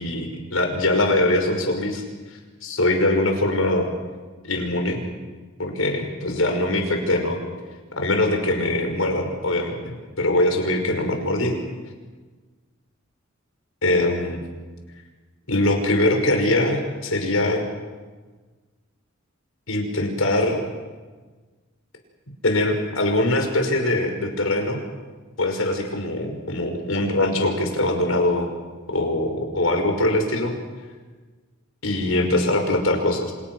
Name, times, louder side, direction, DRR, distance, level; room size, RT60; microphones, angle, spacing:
voice 1, 0.0-2.0 2.6-3.9 4.4-5.0 5.6-7.4 8.0-11.6 13.8-14.4 15.5-17.6 19.7-20.6 22.4-24.8 25.4-28.5 28.9-30.5 31.8-33.3, left 1 dB, 80° left, 3 dB, 5.5 m, -22 dB
28.5 x 27.0 x 6.2 m, 1.4 s
head